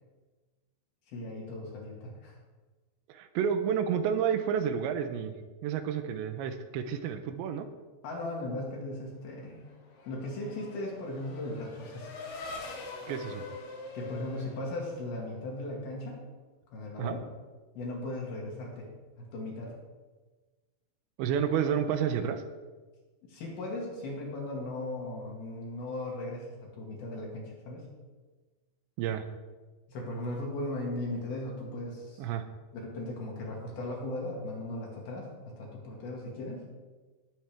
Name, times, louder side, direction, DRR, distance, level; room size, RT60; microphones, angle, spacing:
voice 1, 1.1-2.4 8.0-9.7 10.1-12.2 13.9-16.3 16.7-17.2 17.8-18.9 19.2-19.8 23.2-27.9 29.9-32.2 32.7-36.7, left 1 dB, 60° left, -2 dB, 3.7 m, -37 dB
voice 2, 3.1-5.3 5.6-7.7 13.1-13.5 17.0-17.2 21.2-22.4 29.0-29.3 32.2-32.4, right 8 dB, 85° right, 9 dB, 2.9 m, -30 dB
Race car auto racing / Accelerating revving vroom, 9.4-15.5, left 3 dB, 85° left, 4.2 m, -44 dB
19.0 x 7.5 x 3.5 m, 1.3 s
omnidirectional pair, 5.3 m